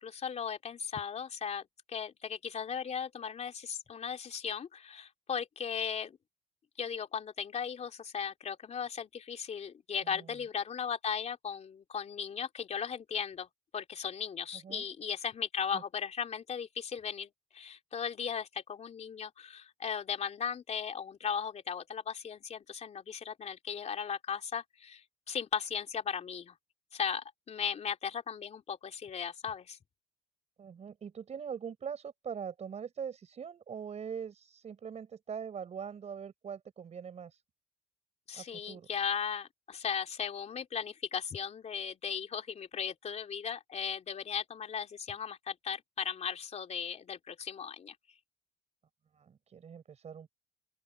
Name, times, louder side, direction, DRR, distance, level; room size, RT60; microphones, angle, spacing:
voice 1, 0.0-1.6 1.9-6.2 6.8-13.5 13.7-26.5 26.9-29.8 38.3-47.9, left 7 dB, 40° left, 3.4 m, -37 dB
voice 2, 10.0-10.4 14.6-14.9 15.7-15.8 30.6-37.4 38.3-38.9 49.1-50.3, right 7 dB, 40° right, 5.4 m, -42 dB
open air
cardioid pair, 110°, 17 cm